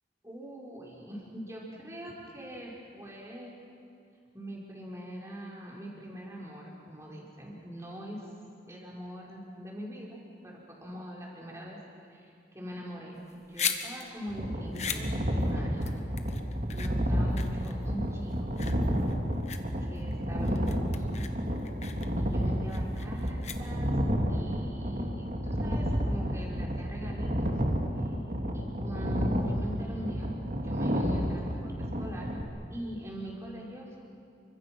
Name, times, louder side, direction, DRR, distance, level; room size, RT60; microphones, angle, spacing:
voice 1, 0.2-3.5 4.3-8.2 8.6-11.8 12.1-16.0 16.7-18.6 19.9-21.3 22.1-23.9 24.3-27.5 28.0-28.1 28.5-31.7 32.0-32.4 32.7-33.9, equal, 15° right, -3 dB, 5.0 m, -42 dB
sound 1, 13.2-24.1, left 7 dB, 40° left, 1.4 m, -39 dB
sound 2, 14.3-32.4, equal, 45° right, 2.5 m, -30 dB
29.5 x 25.0 x 6.2 m, 2.5 s
head